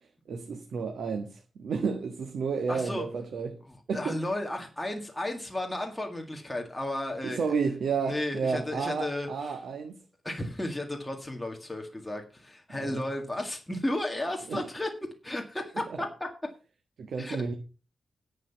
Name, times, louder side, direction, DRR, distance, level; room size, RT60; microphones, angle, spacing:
voice 1, 0.3-3.6 3.9-4.2 7.2-10.0 12.8-13.0 14.5-14.7 17.0-17.5, right 5 dB, 90° right, 1.5 m, -31 dB
voice 2, 2.7-3.1 3.9-9.6 10.2-14.9 15.2-16.1 17.2-17.4, left 1 dB, 10° left, 1.8 m, -34 dB
11.0 x 7.7 x 5.8 m
wide cardioid pair, 155°, 0 cm